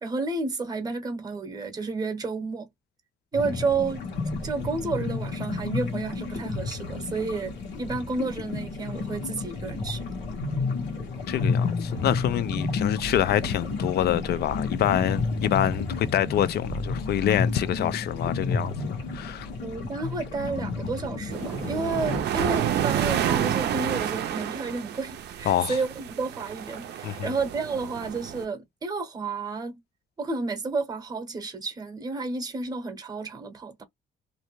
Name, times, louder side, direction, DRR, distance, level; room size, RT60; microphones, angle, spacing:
voice 1, 0.0-2.7 3.3-4.1 4.4-10.1 19.6-29.8 30.2-33.8, right 4 dB, 20° right, 0.8 m, -31 dB
sound 1, 3.3-22.2, left 4 dB, 80° left, 1.1 m, -31 dB
voice 2, 11.3-19.5 25.5-25.8 27.0-27.3, left 11 dB, 60° left, 0.4 m, -26 dB
sound 2, 21.3-28.5, right 10 dB, 65° right, 0.5 m, -29 dB
2.6 x 2.1 x 3.0 m
cardioid pair, 135°, 18 cm